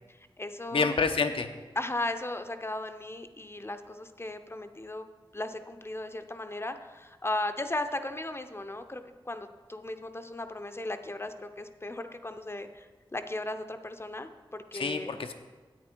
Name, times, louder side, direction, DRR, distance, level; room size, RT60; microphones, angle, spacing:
voice 1, 0.1-0.9 1.7-5.1 5.3-15.2, left 2 dB, 25° left, 8 dB, 0.6 m, -36 dB
voice 2, 0.7-1.5 14.7-15.3, left 4 dB, 85° left, 7 dB, 0.7 m, -28 dB
10.0 x 8.5 x 4.5 m, 1.3 s
wide cardioid pair, 80°, 9 cm